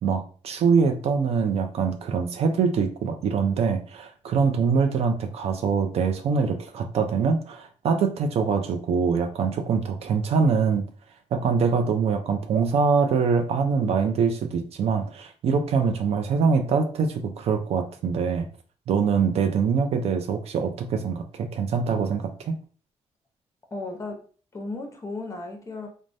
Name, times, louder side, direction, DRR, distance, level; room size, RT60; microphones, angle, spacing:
voice 1, 0.0-10.9 11.3-18.5 18.9-22.6, right 5 dB, 60° right, 6 dB, 0.5 m, -24 dB
voice 2, 23.7-24.3 24.5-25.9, left 2 dB, 25° left, 3 dB, 0.7 m, -35 dB
3.2 x 2.1 x 2.6 m, 0.41 s
cardioid pair, 100°, 12 cm